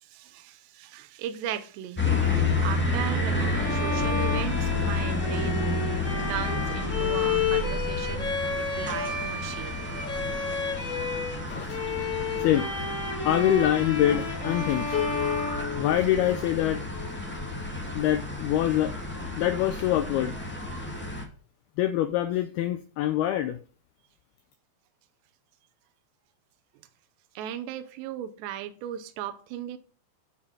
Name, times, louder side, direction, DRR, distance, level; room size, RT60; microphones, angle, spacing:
voice 1, 0.0-5.7 6.3-9.7 27.4-29.8, right 11 dB, 80° right, 3.0 m, -37 dB
sound 1, 2.0-21.2, left 2 dB, 5° left, 0.8 m, -30 dB
Bowed string instrument, 3.5-11.4 11.7-16.5, left 5 dB, 60° left, 0.8 m, -31 dB
voice 2, 13.3-15.0 15.8-16.8 17.9-18.9 19.4-20.3 21.8-23.6, left 12 dB, 80° left, 2.3 m, -25 dB
Piano, 14.9-18.1, left 9 dB, 40° left, 1.5 m, -35 dB
10.0 x 5.6 x 6.2 m
omnidirectional pair, 5.1 m